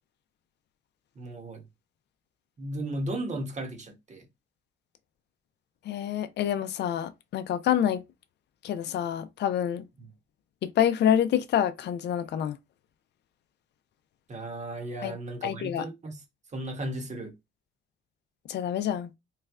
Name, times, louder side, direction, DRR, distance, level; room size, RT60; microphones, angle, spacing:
voice 1, 1.1-1.6 2.6-4.3 10.0-10.1 14.3-16.2 16.5-17.3, right 1 dB, 35° right, 1.1 m, -35 dB
voice 2, 5.9-8.0 8.6-9.8 10.6-12.6 15.0-15.1 15.4-15.8 18.5-19.1, left 10 dB, 60° left, 0.5 m, -27 dB
3.2 x 2.3 x 3.5 m
cardioid pair, 90°, 20 cm